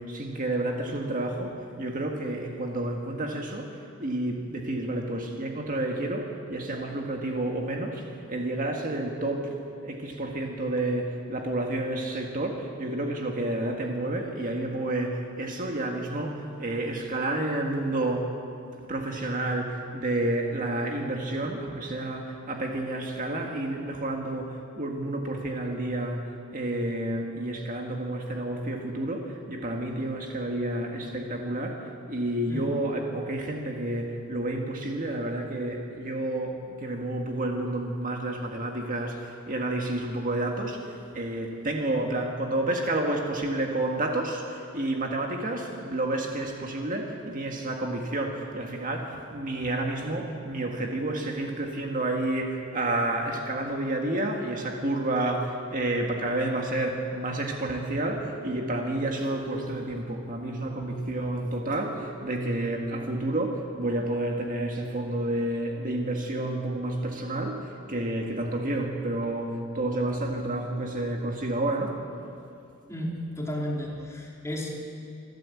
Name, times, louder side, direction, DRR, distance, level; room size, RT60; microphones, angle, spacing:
voice 1, 0.0-9.5 9.8-18.3 18.9-72.0, right 1 dB, 40° right, 1 dB, 1.8 m, -30 dB
voice 2, 72.9-74.9, equal, 15° left, -2 dB, 3.2 m, -33 dB
26.5 x 12.5 x 8.5 m, 2.5 s
head